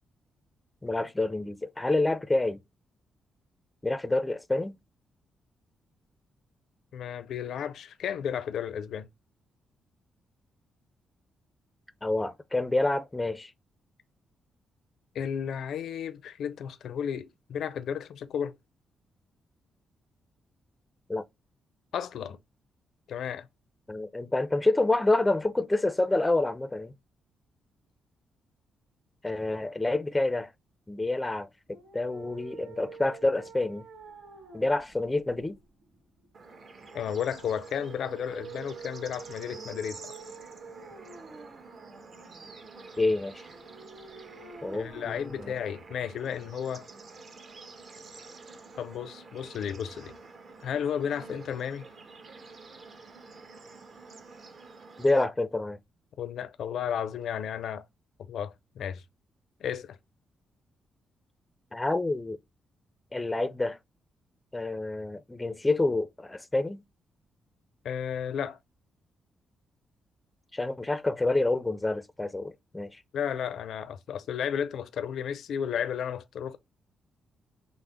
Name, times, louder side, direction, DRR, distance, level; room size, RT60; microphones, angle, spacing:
voice 1, 0.8-2.6 3.8-4.8 12.0-13.5 21.1-21.2 23.9-26.9 29.2-30.5 30.9-33.9 34.5-35.6 43.0-43.5 44.6-45.5 55.0-55.8 61.7-62.4 63.1-63.8 64.5-66.8 70.5-73.0, left 2 dB, 15° left, 0.4 m, -28 dB
voice 2, 6.9-9.1 15.1-18.6 21.9-22.4 23.1-23.5 36.9-40.1 44.7-46.9 48.8-50.2 50.6-51.9 56.2-57.8 58.3-59.0 59.6-60.0 67.8-68.6 73.1-76.6, left 8 dB, 75° left, 0.5 m, -33 dB
sound 1, 31.7-46.7, right 5 dB, 85° right, 1.3 m, -48 dB
Bird / Insect / Frog, 36.3-55.2, right 3 dB, 50° right, 1.1 m, -48 dB
6.0 x 2.0 x 3.4 m
cardioid pair, 110°, 0 cm